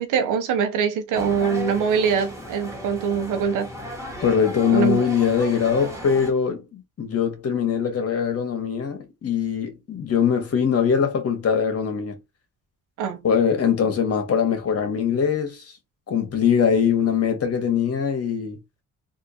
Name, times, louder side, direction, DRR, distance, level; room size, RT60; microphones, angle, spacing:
voice 1, 0.0-3.7 4.7-5.0 13.0-13.2, right 6 dB, 85° right, 1.0 m, -23 dB
sound 1, 1.1-6.3, right 1 dB, 10° right, 1.9 m, -35 dB
voice 2, 4.2-12.2 13.2-15.6 16.1-18.6, left 7 dB, 50° left, 1.6 m, -22 dB
3.6 x 2.9 x 2.9 m
cardioid pair, 90°, 30 cm